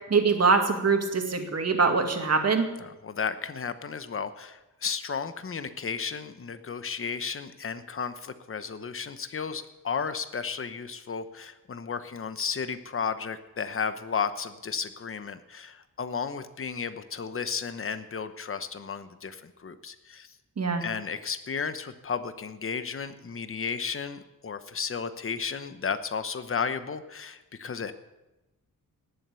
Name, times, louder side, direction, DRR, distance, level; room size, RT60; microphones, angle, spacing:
voice 1, 0.1-2.7 20.6-20.8, right 4 dB, 45° right, 4 dB, 2.1 m, -23 dB
voice 2, 2.8-20.3 20.8-27.9, left 6 dB, 40° left, 11 dB, 1.0 m, -33 dB
19.0 x 7.7 x 7.0 m, 1.0 s
wide cardioid pair, 110°, 34 cm